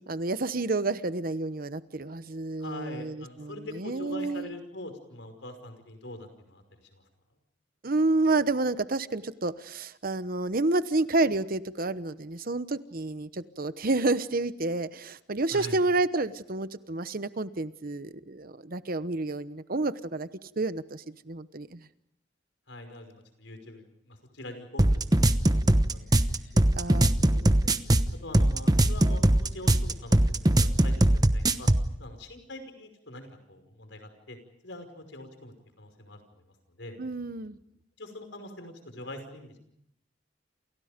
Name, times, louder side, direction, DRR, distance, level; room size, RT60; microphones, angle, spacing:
voice 1, 0.0-4.5 7.8-20.3 20.6-21.9 26.7-27.1 37.0-37.6, right 2 dB, 50° right, 13 dB, 1.0 m, -29 dB
voice 2, 2.6-6.6 6.9-7.0 15.5-15.8 22.7-26.6 27.1-27.7 28.2-31.7 32.0-34.4 34.6-37.0 38.0-39.6, left 1 dB, 75° left, 7 dB, 5.5 m, -44 dB
sound 1, 24.8-31.9, right 1 dB, 20° right, 1.0 m, -21 dB
29.0 x 28.5 x 5.2 m, 0.77 s
head